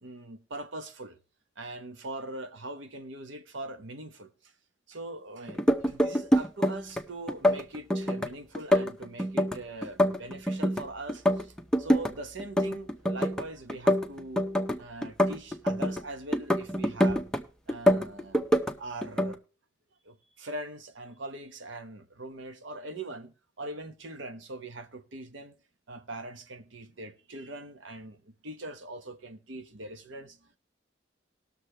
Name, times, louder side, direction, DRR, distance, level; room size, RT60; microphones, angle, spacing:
voice 1, 0.0-1.2 1.6-4.5 4.9-14.5 14.8-17.3 17.7-18.5 18.8-19.4 20.0-25.5 25.9-30.6, right 2 dB, 90° right, 1.1 m, -42 dB
sound 1, 5.5-7.0 7.3-8.3 8.5-10.8 11.1-12.1 12.4-13.4 13.7-16.0 16.3-17.4 17.7-18.7 19.0-19.3, equal, 5° left, 0.6 m, -25 dB
19.5 x 6.6 x 3.2 m
head